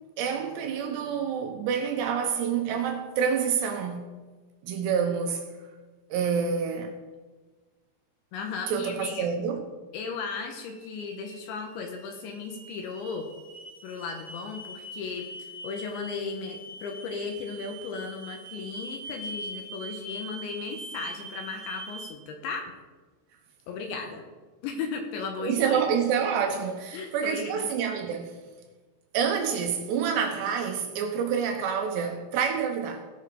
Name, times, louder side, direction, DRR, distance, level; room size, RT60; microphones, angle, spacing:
voice 1, 0.2-4.1 4.6-5.4 6.1-7.0 8.7-9.6 25.4-28.4 29.1-33.1, right 7 dB, 75° right, 2.7 m, -27 dB
voice 2, 8.3-9.3 9.9-13.3 13.8-22.7 23.7-24.2 24.6-25.8 26.9-27.7, left 5 dB, 75° left, 3.1 m, -36 dB
sound 1, 10.3-22.0, right 1 dB, 35° right, 1.1 m, -43 dB
17.5 x 6.4 x 5.0 m
omnidirectional pair, 5.9 m